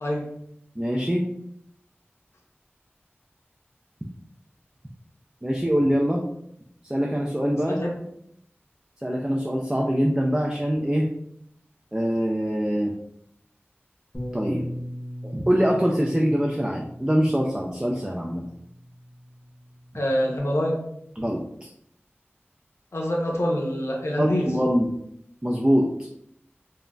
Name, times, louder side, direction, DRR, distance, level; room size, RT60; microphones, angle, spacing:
voice 1, 0.8-1.3 5.4-6.2 6.8-7.8 9.0-11.1 11.9-12.9 14.3-14.7 15.2-18.4 21.2-21.7 24.2-24.9 25.4-26.3, equal, 15° right, 0 dB, 0.3 m, -24 dB
Bass guitar, 14.1-20.4, equal, 30° left, 0.7 m, -39 dB
voice 2, 19.9-20.9 22.9-24.5, equal, 80° left, -1 dB, 0.6 m, -25 dB
3.7 x 2.1 x 2.2 m, 0.74 s
wide cardioid pair, 45°, 4 cm